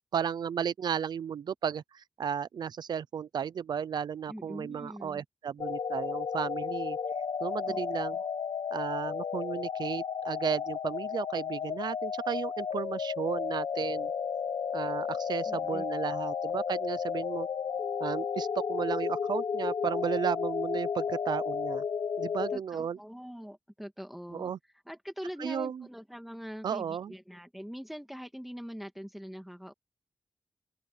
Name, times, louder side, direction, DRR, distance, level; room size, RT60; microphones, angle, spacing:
voice 1, 0.1-7.0 7.4-8.2 8.7-14.1 14.7-17.5 18.0-21.8 22.2-23.0 24.3-24.6 25.4-25.8 26.6-27.1, right 8 dB, 85° right, 0.6 m, -34 dB
voice 2, 4.3-5.2 7.7-7.8 8.1-8.3 15.5-15.9 22.5-24.5 24.9-29.7, equal, ahead, 2.6 m, -43 dB
sound 1, 5.6-22.6, left 6 dB, 80° left, 1.3 m, -33 dB
open air
cardioid pair, 70°, 7 cm